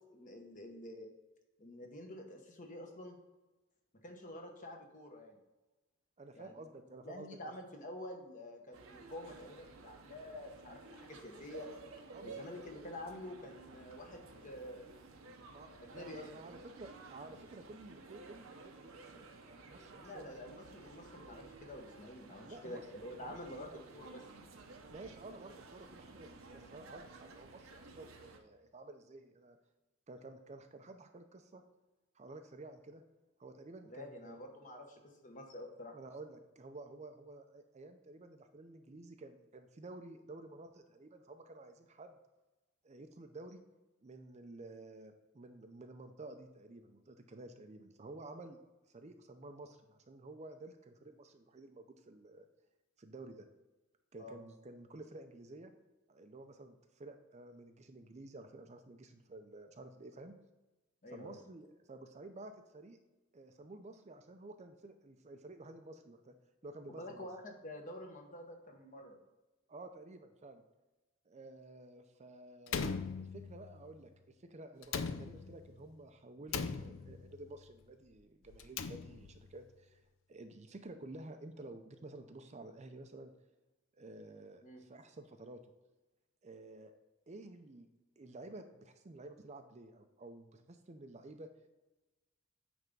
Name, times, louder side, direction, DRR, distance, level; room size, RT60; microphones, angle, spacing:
voice 1, 0.1-1.1 1.6-3.2 4.0-5.4 6.3-6.5 7.0-11.7 12.2-14.9 15.7-16.3 19.9-24.2 33.8-35.9 54.2-54.4 61.0-61.4 66.9-69.2 84.6-84.8, left 1 dB, 40° left, 3 dB, 1.2 m, -48 dB
voice 2, 6.2-7.3 12.1-12.4 15.5-20.3 22.4-22.9 23.3-23.8 24.9-29.6 30.1-31.6 32.1-33.0 33.4-34.4 35.9-42.1 42.8-43.6 44.0-48.6 48.9-52.5 53.0-53.5 54.1-55.7 56.1-60.3 61.1-63.0 63.3-66.4 66.6-67.3 69.7-70.6 71.3-80.0 80.3-83.3 83.9-85.6 86.4-86.9 87.3-87.9 88.2-91.5, right 2 dB, 35° right, 7 dB, 0.5 m, -52 dB
sound 1, 8.7-28.4, right 3 dB, 80° right, 0.8 m, -54 dB
Slam, 72.7-73.8 74.8-75.8 76.5-77.4 78.5-79.5, left 5 dB, 70° left, 0.5 m, -39 dB
9.1 x 3.5 x 5.3 m, 1.1 s
head